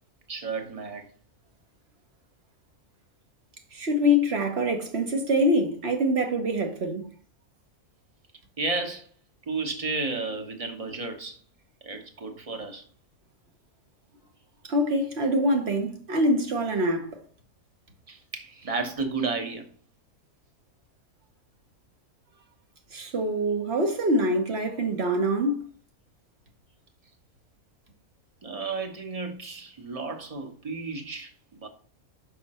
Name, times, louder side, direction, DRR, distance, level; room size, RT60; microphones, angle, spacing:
voice 1, 0.3-1.1 8.6-9.1 9.5-11.4 11.8-12.8 18.1-19.7 28.4-31.7, right 3 dB, 25° right, 1.1 m, -32 dB
voice 2, 3.7-7.1 14.7-17.1 22.9-25.6, equal, 50° right, 1.4 m, -24 dB
5.9 x 5.8 x 4.2 m
omnidirectional pair, 1.5 m